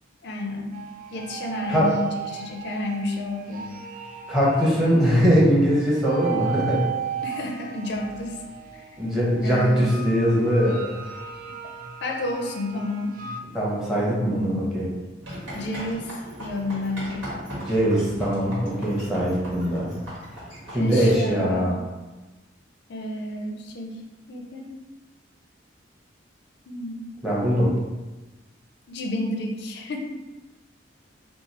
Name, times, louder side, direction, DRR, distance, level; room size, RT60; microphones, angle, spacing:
voice 1, 0.2-0.8 1.1-3.7 7.2-8.4 8.7-8.8 9.4-10.2 12.0-13.1 14.3-14.9 15.5-16.1 16.4-17.4 20.7-21.7 22.9-24.0 24.3-24.7 26.7-27.0 28.9-30.0, left 1 dB, 60° left, 1 dB, 0.4 m, -31 dB
sound 1, 0.7-13.4, right 7 dB, 45° right, 0.3 m, -36 dB
voice 2, 4.3-6.8 9.0-11.1 13.5-14.9 17.7-19.9 20.7-21.7 27.2-27.7, equal, 5° right, -6 dB, 0.8 m, -21 dB
sound 2, 15.2-21.2, equal, 85° right, 1.4 m, -38 dB
2.9 x 2.3 x 3.9 m, 1.2 s
head